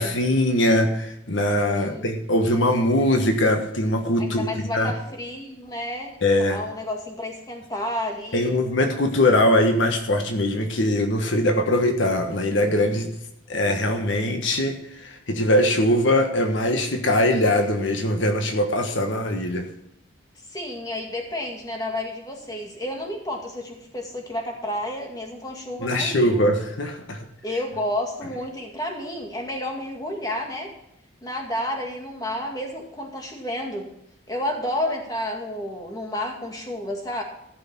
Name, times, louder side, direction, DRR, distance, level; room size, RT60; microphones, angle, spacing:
voice 1, 0.0-4.5 4.7-4.9 6.2-6.6 8.3-13.1 13.5-19.7 25.8-27.2, left 1 dB, 70° left, 5 dB, 1.3 m, -21 dB
voice 2, 1.6-2.0 4.2-8.6 20.5-26.4 27.4-30.7 31.2-33.9 34.3-37.2, left 1 dB, 20° left, 1 dB, 2.0 m, -31 dB
14.5 x 6.3 x 5.9 m, 0.78 s
head